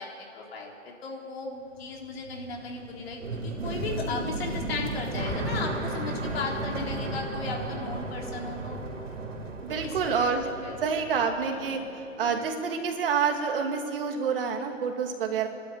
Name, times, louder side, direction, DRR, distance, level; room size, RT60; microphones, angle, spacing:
voice 1, 0.0-8.8 9.8-10.3 10.6-10.8 11.5-11.8, left 3 dB, 50° left, 0 dB, 3.9 m, -36 dB
sound 1, 1.8-11.9 12.1-13.0, right 2 dB, 90° right, 4.0 m, -35 dB
sound 2, 5.3-9.7, left 1 dB, 15° left, 3.6 m, -45 dB
voice 2, 9.6-10.5 10.8-11.8 12.2-15.5, right 6 dB, 50° right, 4 dB, 2.5 m, -27 dB
28.0 x 12.0 x 9.0 m, 2.8 s
hypercardioid pair, 165°, 37 cm